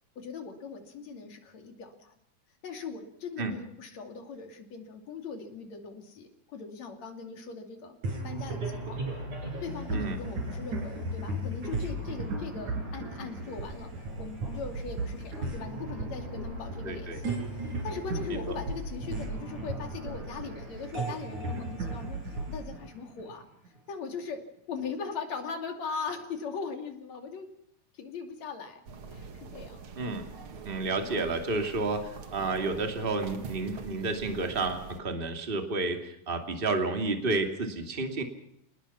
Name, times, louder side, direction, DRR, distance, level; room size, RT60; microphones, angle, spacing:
voice 1, 0.2-2.2 2.6-8.0 8.2-9.0 9.6-23.4 23.9-24.4 24.7-27.5 27.9-28.8 29.1-29.9 31.0-31.2, left 5 dB, 60° left, 5 dB, 3.8 m, -40 dB
sound 1, 8.0-23.7, right 2 dB, 65° right, 7.2 m, -35 dB
voice 2, 16.8-17.2 18.5-18.6 30.0-30.3 30.7-38.2, right 3 dB, 20° right, 5 dB, 2.3 m, -31 dB
sound 2, 28.9-35.0, right 5 dB, 45° right, 2.1 m, -44 dB
28.0 x 19.5 x 5.8 m, 0.76 s
omnidirectional pair, 3.7 m